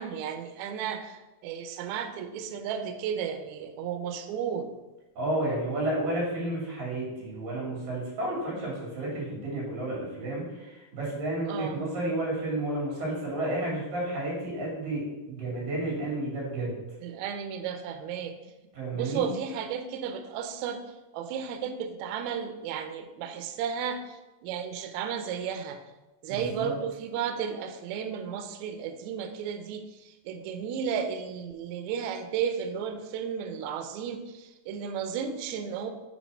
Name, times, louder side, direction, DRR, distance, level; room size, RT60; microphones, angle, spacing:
voice 1, 0.0-4.7 11.5-11.8 17.0-18.4 18.9-20.8 21.1-25.8 26.2-35.9, right 7 dB, 85° right, 7 dB, 1.6 m, -33 dB
voice 2, 5.2-16.7 18.7-19.3 26.3-26.7, right 1 dB, 70° right, -4 dB, 4.5 m, -31 dB
7.5 x 4.6 x 5.5 m, 1.1 s
omnidirectional pair, 4.1 m